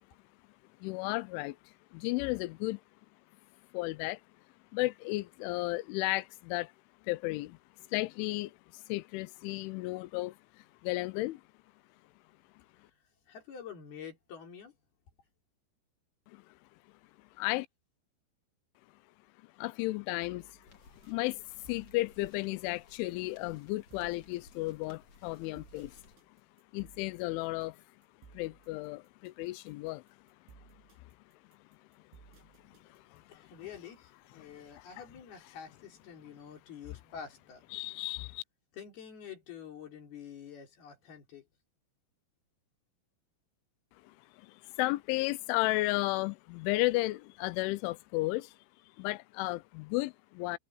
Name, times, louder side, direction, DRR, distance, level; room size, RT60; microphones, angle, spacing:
voice 1, 0.8-2.8 3.7-4.2 4.7-6.7 7.0-7.6 7.9-11.4 16.3-16.4 17.4-17.7 19.6-20.7 21.0-26.0 26.7-27.8 28.3-30.0 32.6-33.2 34.4-34.5 34.7-34.8 37.7-38.4 44.0-48.6 49.0-50.6, left 20 dB, 80° left, 3.0 m, -34 dB
voice 2, 12.7-14.8 32.6-32.9 33.3-37.7 38.7-41.5, left 7 dB, 50° left, 5.7 m, -48 dB
sound 1, 20.2-33.4, right 6 dB, 70° right, 8.1 m, -60 dB
sound 2, 20.7-26.2, left 3 dB, 35° left, 3.4 m, -59 dB
omnidirectional pair, 5.8 m